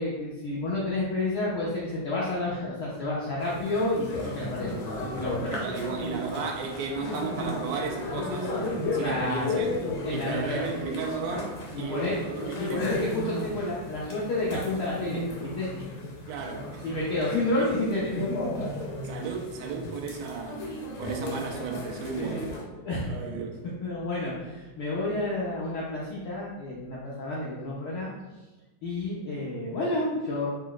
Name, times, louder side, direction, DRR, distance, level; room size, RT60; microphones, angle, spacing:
voice 1, 0.0-4.7 5.0-5.5 9.0-9.4 10.0-10.6 11.7-12.1 12.6-15.7 16.8-18.1 22.2-22.4 22.8-23.2 23.8-28.1 28.8-30.5, left 2 dB, 90° left, -6 dB, 1.1 m, -30 dB
sound 1, 3.4-22.6, left 2 dB, 65° left, 1.4 m, -35 dB
voice 2, 5.5-9.7 10.1-12.9 16.3-16.9 17.6-17.7 19.0-22.6 23.1-23.6, right 4 dB, 75° right, 1 dB, 1.8 m, -34 dB
4.9 x 4.1 x 2.4 m, 1.1 s
omnidirectional pair, 3.4 m